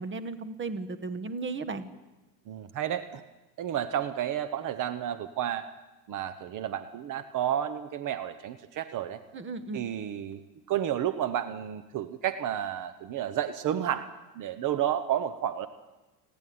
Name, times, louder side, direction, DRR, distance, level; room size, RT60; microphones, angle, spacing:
voice 1, 0.0-1.9 9.3-9.8, right 3 dB, 25° right, 10 dB, 1.5 m, -35 dB
voice 2, 2.5-3.2 3.6-5.7 6.1-9.2 9.7-10.4 10.7-14.1 14.3-15.7, right 10 dB, 45° right, 11 dB, 1.1 m, -31 dB
29.0 x 10.5 x 9.5 m, 1.1 s
supercardioid pair, 120°, 45 cm